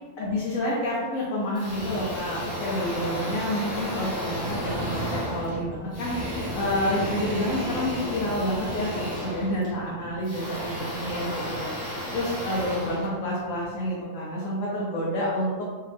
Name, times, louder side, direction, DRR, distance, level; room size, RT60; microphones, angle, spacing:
voice 1, 0.2-15.7, left 1 dB, 85° left, -6 dB, 1.2 m, -29 dB
sound 1, 1.5-13.8, equal, 35° left, 1.3 m, -32 dB
3.3 x 2.8 x 3.3 m, 1.4 s
omnidirectional pair, 1.3 m